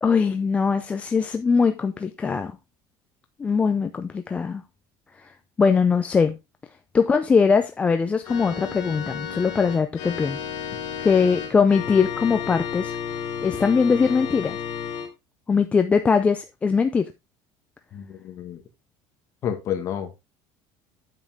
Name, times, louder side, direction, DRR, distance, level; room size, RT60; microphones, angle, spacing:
voice 1, 0.0-2.6 3.4-4.6 5.6-6.4 6.9-10.4 11.0-12.9 13.4-14.6 15.5-17.1, left 5 dB, 15° left, 0.5 m, -21 dB
Organ, 8.2-15.1, left 8 dB, 75° left, 3.2 m, -32 dB
voice 2, 17.9-18.6 19.4-20.2, left 9 dB, 35° left, 1.7 m, -30 dB
8.8 x 7.2 x 3.6 m
cardioid pair, 175°, 9 cm